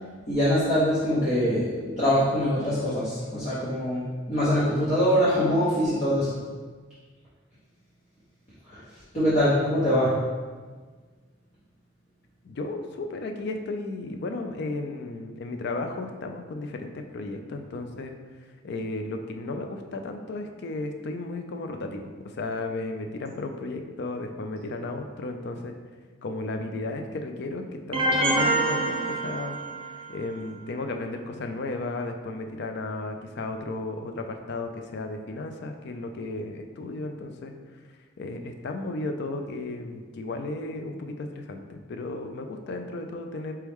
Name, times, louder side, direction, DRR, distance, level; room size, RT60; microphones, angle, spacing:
voice 1, 0.3-6.4 8.7-8.8 9.1-10.1, equal, 35° left, -10 dB, 0.9 m, -23 dB
voice 2, 12.4-18.1 18.6-25.7 26.2-29.6 30.1-37.5 38.2-43.5, left 2 dB, 60° left, 5 dB, 0.4 m, -34 dB
sound 1, 27.9-30.0, right 2 dB, 30° right, 0.5 m, -25 dB
4.5 x 3.0 x 3.5 m, 1.4 s
head